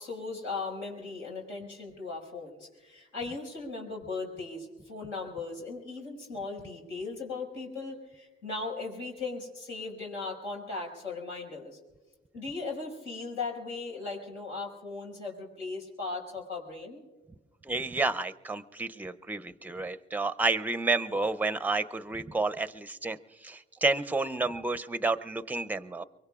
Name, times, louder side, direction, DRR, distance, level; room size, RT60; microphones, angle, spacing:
voice 1, 0.0-11.8 12.3-17.0, left 3 dB, 85° left, -2 dB, 5.4 m, -38 dB
voice 2, 17.7-23.2 23.4-26.0, right 3 dB, 10° right, 12 dB, 0.6 m, -30 dB
24.0 x 23.0 x 2.4 m, 1.2 s
cardioid pair, 90°, 20 cm